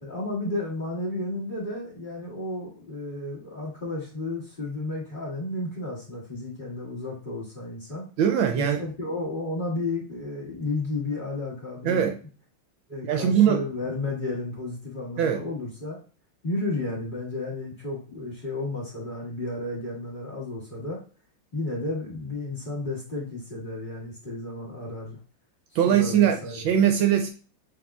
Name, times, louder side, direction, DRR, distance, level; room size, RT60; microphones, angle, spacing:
voice 1, 0.0-8.1 8.5-12.0 12.9-16.0 16.4-21.0 21.5-25.2 25.8-26.6, left 2 dB, 25° left, 1.7 m, -32 dB
voice 2, 8.2-8.8 11.8-12.2 13.0-13.7 15.2-15.4 25.7-27.3, right 9 dB, 75° right, 1.3 m, -21 dB
6.2 x 3.5 x 2.4 m
omnidirectional pair, 2.3 m